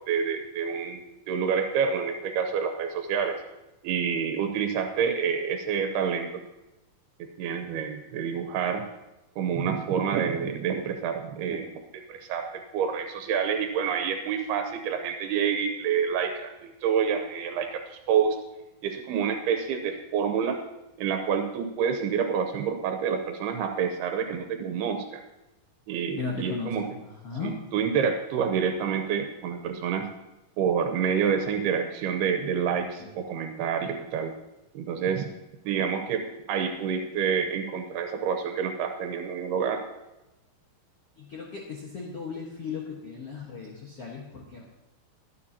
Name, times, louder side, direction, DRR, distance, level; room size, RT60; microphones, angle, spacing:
voice 1, 0.1-1.0 1.3-3.4 3.8-6.4 7.2-8.8 9.4-11.7 12.1-12.5 12.7-18.4 18.8-20.6 21.0-25.2 25.9-26.9 27.4-30.1 30.6-34.3 34.7-35.3 35.7-39.8, right 7 dB, 80° right, 5 dB, 2.9 m, -28 dB
voice 2, 26.2-27.5 33.0-33.1 41.2-44.7, left 5 dB, 55° left, -2 dB, 1.8 m, -36 dB
22.0 x 9.4 x 2.9 m, 0.99 s
omnidirectional pair, 4.5 m